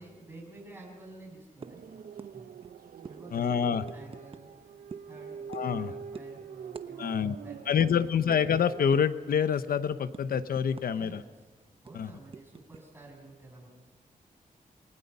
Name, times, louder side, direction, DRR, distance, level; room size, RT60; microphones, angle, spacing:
voice 1, 0.0-2.1 2.3-2.6 3.0-8.3 10.9-11.5 11.8-13.7, right 2 dB, 15° right, -1 dB, 7.9 m, -51 dB
sound 1, 1.6-1.8 2.2-2.3 2.6-2.7 3.1-3.2 3.9-4.5 4.9-5.1 5.5-5.8 6.1-6.3 6.7-6.9 7.2-7.3 7.8-7.9 8.3-8.5 8.9-9.2 9.6-11.1 11.3-11.5 11.9-12.8, right 5 dB, 40° right, 0.9 m, -45 dB
sound 2, 1.6-9.1, right 7 dB, 85° right, 0.7 m, -45 dB
voice 2, 3.3-3.8 5.5-5.9 7.0-7.3 7.7-11.2 11.9-12.1, left 7 dB, 85° left, 12 dB, 1.0 m, -27 dB
28.5 x 20.5 x 5.6 m, 1.3 s
wide cardioid pair, 135°, 15 cm